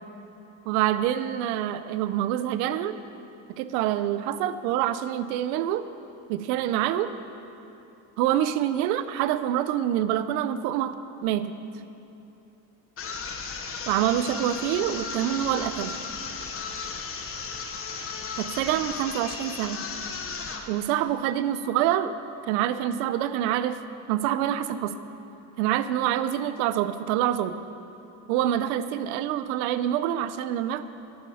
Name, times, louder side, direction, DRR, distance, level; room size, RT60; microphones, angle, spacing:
voice 1, 0.6-2.9 3.6-5.8 6.3-7.1 8.2-10.9 11.2-11.5 13.9-15.9 18.4-19.8 20.7-22.1 22.5-23.8 24.1-24.9 25.6-27.6 28.3-30.8, right 11 dB, 90° right, 13 dB, 0.7 m, -26 dB
sound 1, 13.0-20.7, left 5 dB, 30° left, 1.1 m, -35 dB
11.0 x 10.5 x 4.9 m, 2.8 s
supercardioid pair, 110°, 41 cm